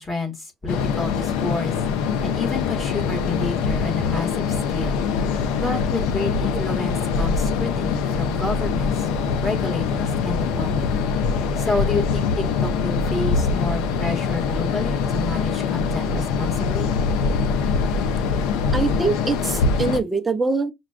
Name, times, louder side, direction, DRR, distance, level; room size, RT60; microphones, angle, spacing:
voice 1, 0.0-1.7 2.2-9.1 9.4-10.9 11.6-16.9, left 3 dB, 20° left, 1.4 m, -29 dB
sound 1, 0.7-20.0, left 5 dB, 85° left, 0.4 m, -23 dB
voice 2, 18.7-20.7, right 3 dB, 15° right, 0.5 m, -23 dB
5.9 x 2.2 x 2.4 m
cardioid pair, 135°, 0 cm